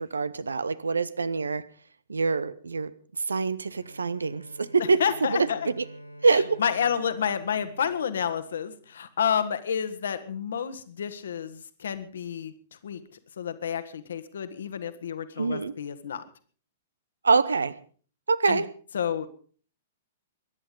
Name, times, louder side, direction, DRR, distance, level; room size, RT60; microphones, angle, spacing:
voice 1, 0.0-1.6 2.1-2.9 3.3-5.0 5.3-5.5 5.8-5.9 6.2-6.6 15.4-15.7 17.2-17.7 18.3-18.6, right 4 dB, 70° right, 17 dB, 1.0 m, -25 dB
Bowed string instrument, 3.7-9.2, right 1 dB, 85° left, 4.7 m, -47 dB
voice 2, 5.0-5.7 6.3-12.5 12.8-13.0 13.4-16.2 18.5-18.6 18.9-19.3, left 8 dB, 60° left, 11 dB, 1.7 m, -30 dB
22.0 x 11.0 x 5.3 m, 0.43 s
figure-of-eight pair, 105°, 0 cm